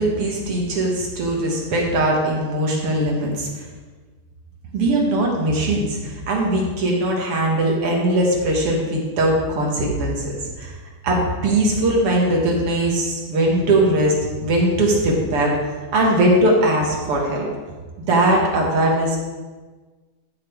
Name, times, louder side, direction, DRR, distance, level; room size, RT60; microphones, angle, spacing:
voice 1, 0.0-3.7 4.7-10.7 11.0-15.6 15.9-17.5 18.0-19.2, right 1 dB, 45° right, -1 dB, 2.2 m, -20 dB
14.5 x 5.9 x 4.7 m, 1.4 s
omnidirectional pair, 4.2 m